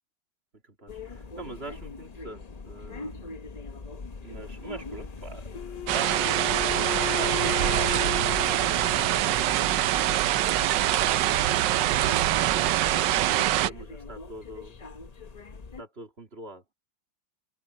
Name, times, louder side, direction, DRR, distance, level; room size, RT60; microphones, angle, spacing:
voice 1, 0.6-3.4 4.2-10.3 10.6-13.2 13.5-14.8 15.8-16.6, right 2 dB, 30° right, 2.6 m, -44 dB
sound 1, 0.9-15.8, left 3 dB, 55° left, 0.4 m, -41 dB
Wind instrument woodwind instrument, 5.5-9.6, left 11 dB, 75° left, 1.5 m, -35 dB
sound 2, 5.9-13.7, right 14 dB, 70° right, 1.2 m, -24 dB
omnidirectional pair, 2.2 m